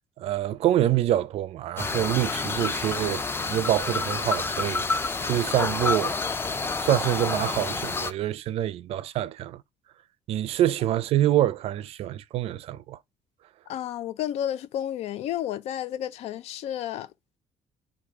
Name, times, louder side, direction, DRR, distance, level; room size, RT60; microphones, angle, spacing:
voice 1, 0.2-6.2 6.4-6.5 6.8-9.6 10.3-13.0, right 12 dB, 65° right, 0.5 m, -26 dB
sound 1, 1.8-8.1, left 4 dB, 20° left, 0.5 m, -29 dB
voice 2, 13.7-17.1, left 11 dB, 75° left, 0.5 m, -31 dB
4.7 x 2.4 x 4.7 m
cardioid pair, 115°, 11 cm